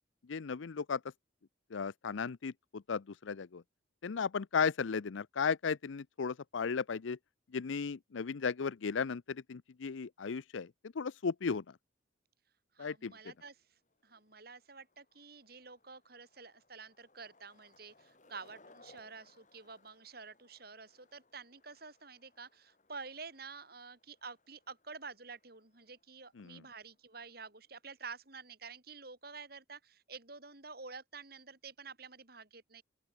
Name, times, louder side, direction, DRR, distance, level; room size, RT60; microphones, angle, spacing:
voice 1, 0.3-1.0 1.7-3.6 4.0-7.2 7.5-10.7 11.0-11.6 12.8-13.1 26.4-26.6, left 5 dB, 85° left, 0.6 m, -35 dB
voice 2, 12.7-13.6 14.0-32.8, right 4 dB, 55° right, 4.2 m, -49 dB
Skateboard, 13.1-28.0, left 2 dB, 40° left, 5.8 m, -67 dB
open air
head